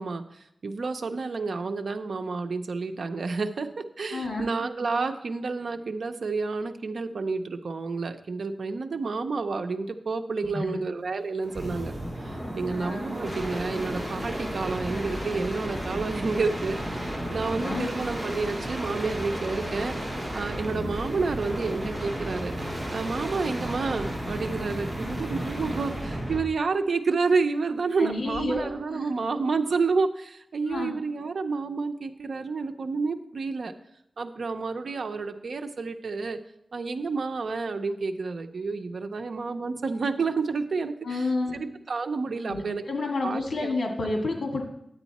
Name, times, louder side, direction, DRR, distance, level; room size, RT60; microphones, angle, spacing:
voice 1, 0.0-20.0 20.3-22.5 22.9-33.7 34.2-36.4 36.7-42.8 43.2-43.7, right 4 dB, 80° right, 6 dB, 0.6 m, -30 dB
voice 2, 4.1-4.4 10.5-10.8 12.7-13.2 17.6-17.9 28.0-28.7 30.6-30.9 41.0-41.6 42.5-44.6, left 2 dB, 70° left, 2 dB, 2.0 m, -30 dB
sound 1, 11.4-26.5 28.3-28.7, equal, 15° right, 3.5 m, -33 dB
10.0 x 8.2 x 4.2 m, 0.79 s
wide cardioid pair, 90°, 0 cm